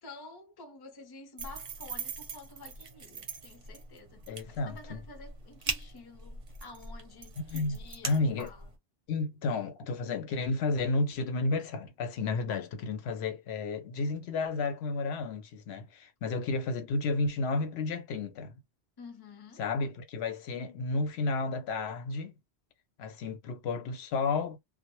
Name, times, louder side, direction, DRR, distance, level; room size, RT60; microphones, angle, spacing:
voice 1, 0.0-8.7 19.0-19.6, left 3 dB, 30° left, 0.5 m, -50 dB
sound 1, 1.4-8.8, right 5 dB, 45° right, 0.6 m, -41 dB
voice 2, 4.3-5.0 7.4-7.8 8.0-8.5 9.1-18.5 19.6-22.3 23.0-24.6, left 3 dB, 80° left, 0.8 m, -32 dB
2.1 x 2.0 x 2.9 m
omnidirectional pair, 1.1 m